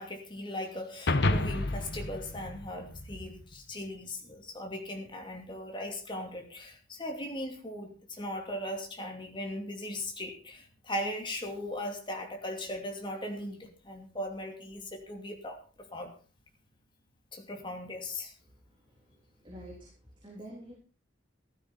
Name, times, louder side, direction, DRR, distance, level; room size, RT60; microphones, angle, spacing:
voice 1, 0.0-16.1 17.3-18.3, left 1 dB, 25° left, 3 dB, 2.7 m, -38 dB
sound 1, 1.1-3.6, left 2 dB, 60° left, 1.2 m, -30 dB
voice 2, 19.4-20.0 20.2-20.7, equal, 25° right, -2 dB, 3.5 m, -47 dB
15.0 x 13.5 x 4.2 m, 0.36 s
head